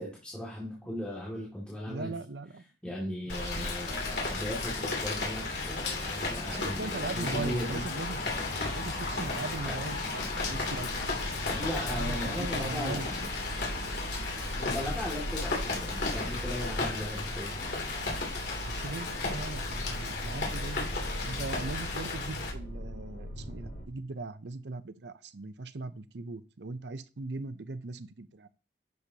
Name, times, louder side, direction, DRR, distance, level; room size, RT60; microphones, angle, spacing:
voice 1, 0.0-2.1 2.8-7.8 9.6-9.8 11.5-13.3 14.6-17.5 19.9-20.0, left 1 dB, 5° left, -7 dB, 2.3 m, -37 dB
voice 2, 1.9-2.6 3.2-3.8 6.5-8.2 8.7-13.3 18.6-20.9 21.2-28.5, right 3 dB, 75° right, 13 dB, 0.7 m, -40 dB
Rain, 3.3-22.5, left 3 dB, 75° left, 2.9 m, -34 dB
sound 1, 6.9-16.8, equal, 30° right, 3.8 m, -44 dB
sound 2, 10.2-23.8, equal, 55° left, 2.7 m, -40 dB
10.5 x 6.8 x 2.9 m, 0.35 s
head